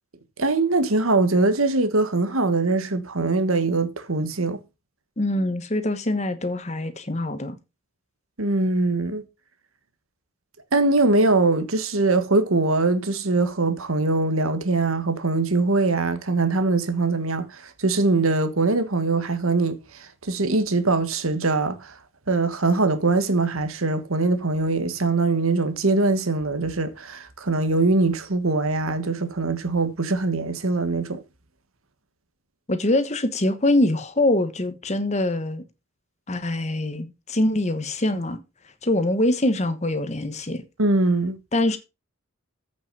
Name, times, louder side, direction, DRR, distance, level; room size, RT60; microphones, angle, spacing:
voice 1, 0.4-4.6 8.4-9.2 10.7-21.9 22.3-31.2 40.8-41.4, right 3 dB, 75° right, 1.5 m, -22 dB
voice 2, 5.2-7.6 32.7-35.6 36.3-38.4 38.8-40.6 41.5-41.8, left 1 dB, 30° left, 1.2 m, -24 dB
8.5 x 6.1 x 5.3 m
head